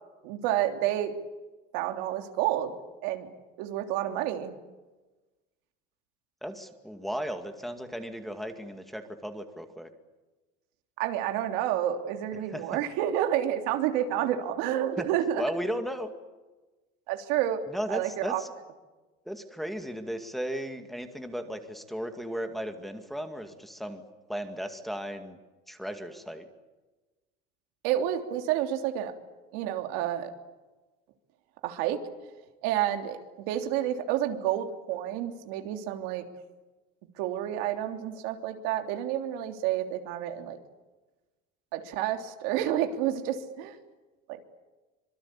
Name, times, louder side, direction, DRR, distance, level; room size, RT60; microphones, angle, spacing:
voice 1, 0.2-1.2 1.7-2.8 3.0-4.5 11.0-15.4 17.1-18.4 27.8-29.1 29.5-30.3 31.6-32.0 32.6-36.2 37.2-40.6 41.7-43.8 44.3-44.4, right 11 dB, 85° right, 5 dB, 3.2 m, -29 dB
voice 2, 6.4-9.9 12.5-12.6 15.0-15.1 15.4-16.1 17.7-18.5 19.3-24.0 24.3-25.4 25.7-26.5, equal, ahead, 5 dB, 2.2 m, -35 dB
25.5 x 24.0 x 8.6 m, 1.2 s
cardioid pair, 150°, 21 cm